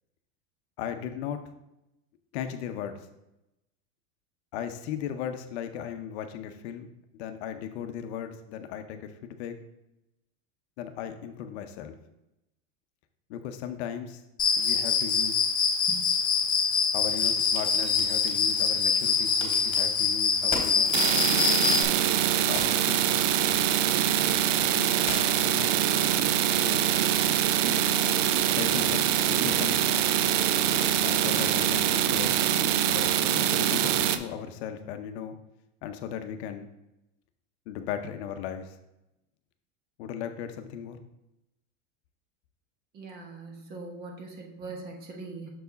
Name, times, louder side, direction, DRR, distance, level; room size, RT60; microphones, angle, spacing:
voice 1, 0.8-1.4 2.3-3.0 4.5-9.6 10.8-12.0 13.3-14.2 14.6-15.5 16.9-21.0 22.4-23.1 24.7-25.1 25.5-25.8 26.6-26.9 28.6-30.0 31.0-32.3 32.9-35.3 35.8-36.7 37.7-38.8 40.0-41.0, left 9 dB, 60° left, 7 dB, 0.7 m, -37 dB
Cricket, 14.4-21.8, left 5 dB, 10° left, 0.5 m, -25 dB
Crack, 16.1-32.2, left 4 dB, 40° left, 1.7 m, -46 dB
sound 1, 20.9-34.2, right 10 dB, 70° right, 0.6 m, -24 dB
voice 2, 42.9-45.5, right 3 dB, 25° right, 2 dB, 1.0 m, -41 dB
6.5 x 4.7 x 4.0 m, 0.89 s
supercardioid pair, 160°, 38 cm